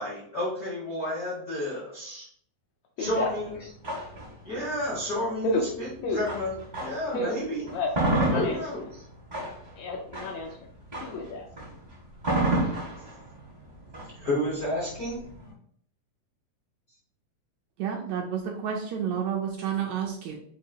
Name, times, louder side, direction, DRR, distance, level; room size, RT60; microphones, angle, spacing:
voice 1, 0.0-2.3 3.0-3.5 4.4-5.9 6.1-7.7 8.3-9.0 14.2-15.2, left 1 dB, 55° left, -6 dB, 0.9 m, -31 dB
voice 2, 3.0-3.3 5.4-5.6 6.0-6.2 7.1-7.4 7.7-7.9 8.2-8.6 9.7-10.7 11.0-11.5, left 2 dB, 75° left, 1 dB, 1.7 m, -30 dB
sound 1, 3.0-7.2 7.6-15.5, right 1 dB, 35° right, 0.6 m, -31 dB
voice 3, 17.8-20.4, right 8 dB, 75° right, 0 dB, 1.7 m, -30 dB
6.5 x 2.8 x 2.8 m, 0.63 s
omnidirectional pair, 3.5 m